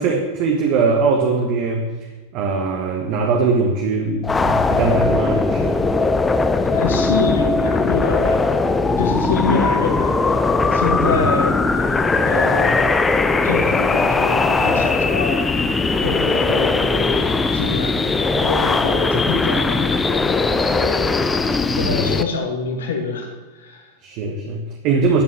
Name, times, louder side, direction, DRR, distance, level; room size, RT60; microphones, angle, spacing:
voice 1, 0.0-1.9 2.3-5.8 11.0-11.3 21.7-22.1 24.0-25.2, right 4 dB, 40° right, 2 dB, 1.6 m, -21 dB
sound 1, 4.2-22.2, left 3 dB, 15° left, 0.8 m, -19 dB
voice 2, 6.7-8.4 9.0-10.4 10.7-13.1 13.4-15.5 16.0-17.2 17.5-18.1 18.3-21.2 21.7-23.9, left 4 dB, 65° left, 3 dB, 2.4 m, -26 dB
12.0 x 8.3 x 7.9 m, 1.2 s
figure-of-eight pair, 90°, 0 cm